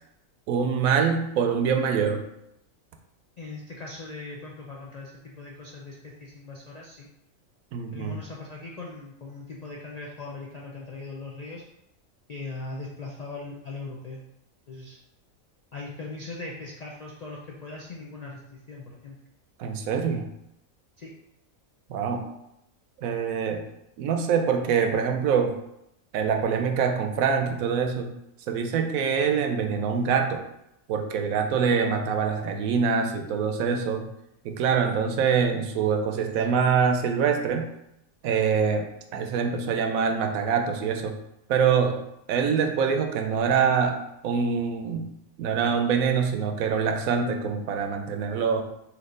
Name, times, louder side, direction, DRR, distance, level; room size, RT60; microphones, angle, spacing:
voice 1, 0.5-2.2 7.7-8.2 19.6-20.3 21.9-22.2 23.0-23.6 24.0-25.6 26.1-28.1 28.5-30.4 30.9-34.1 34.4-37.7 38.2-41.2 41.5-45.1 45.4-48.6, right 6 dB, 75° right, 5 dB, 1.0 m, -25 dB
voice 2, 3.4-7.1 7.9-11.6 12.3-14.2 14.7-15.0 15.7-19.2 21.0-21.1, left 3 dB, 75° left, -3 dB, 0.3 m, -40 dB
4.5 x 2.7 x 3.8 m, 0.83 s
omnidirectional pair, 1.5 m